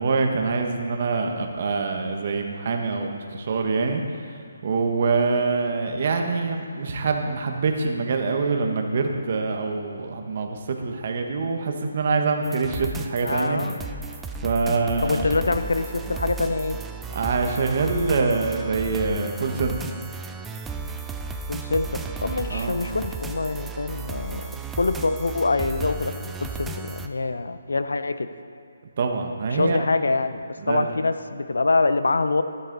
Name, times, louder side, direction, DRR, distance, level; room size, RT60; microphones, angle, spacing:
voice 1, 0.0-4.0 4.3-4.4 4.6-13.6 14.4-15.3 17.1-19.8 22.5-22.8 29.0-29.8 30.6-30.9, right 4 dB, 40° right, 3 dB, 1.3 m, -25 dB
sound 1, 12.4-27.1, right 4 dB, 5° right, 0.4 m, -34 dB
voice 2, 13.2-13.8 15.0-16.8 21.5-28.3 29.5-32.4, left 3 dB, 90° left, 11 dB, 0.7 m, -25 dB
13.0 x 11.5 x 4.0 m, 2.5 s
hypercardioid pair, 165°, 0 cm